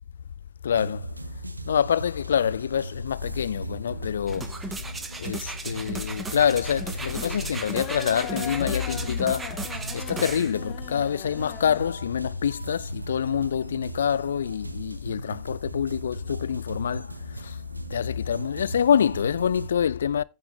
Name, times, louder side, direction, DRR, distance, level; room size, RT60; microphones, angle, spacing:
voice 1, 0.6-1.1 1.7-4.5 5.2-9.6 9.9-17.1 17.4-17.6 17.9-20.2, left 8 dB, 65° left, 0.3 m, -26 dB
sound 1, 0.7-19.7, right 2 dB, 85° right, 0.6 m, -38 dB
sound 2, 3.9-13.9, left 10 dB, 35° left, 1.1 m, -41 dB
sound 3, 4.3-10.5 11.1-11.2, right 3 dB, 15° right, 1.1 m, -36 dB
14.0 x 5.7 x 3.1 m
figure-of-eight pair, 90°, 0 cm